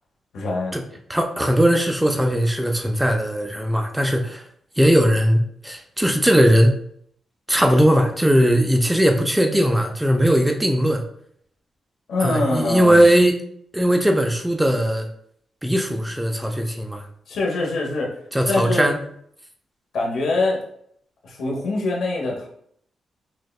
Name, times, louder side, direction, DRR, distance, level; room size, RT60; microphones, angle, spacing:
voice 1, 0.3-0.7 12.1-13.0 17.3-18.1 18.5-18.9 19.9-20.6 21.2-22.5, left 2 dB, 70° left, -1 dB, 0.9 m, -23 dB
voice 2, 1.1-4.4 4.8-6.7 7.5-11.0 12.2-13.3 13.7-15.1 15.6-17.0 18.3-19.0, equal, 5° right, 3 dB, 0.3 m, -19 dB
6.1 x 2.2 x 2.3 m, 0.66 s
wide cardioid pair, 160°, 0 cm